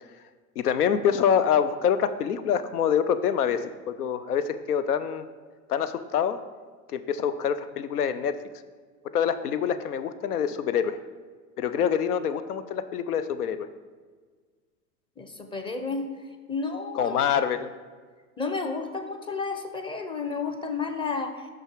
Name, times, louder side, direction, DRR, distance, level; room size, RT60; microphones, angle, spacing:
voice 1, 0.6-5.2 5.7-6.4 6.9-8.4 9.1-11.0 11.6-13.7 16.9-17.7, left 8 dB, 85° left, 12 dB, 0.6 m, -25 dB
voice 2, 15.2-16.1 16.5-17.5 18.4-21.5, left 4 dB, 10° left, 6 dB, 0.6 m, -31 dB
6.2 x 6.0 x 4.7 m, 1.5 s
hypercardioid pair, 90°, 45 cm